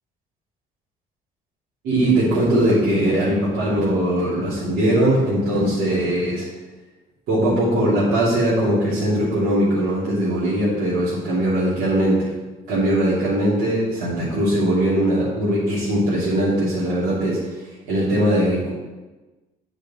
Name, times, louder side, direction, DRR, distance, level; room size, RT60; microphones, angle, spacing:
voice 1, 1.8-6.5 7.3-12.3 12.7-17.5 17.9-18.7, right 1 dB, 80° right, -11 dB, 2.9 m, -20 dB
9.8 x 5.1 x 4.3 m, 1.2 s
cardioid pair, 110°, 17 cm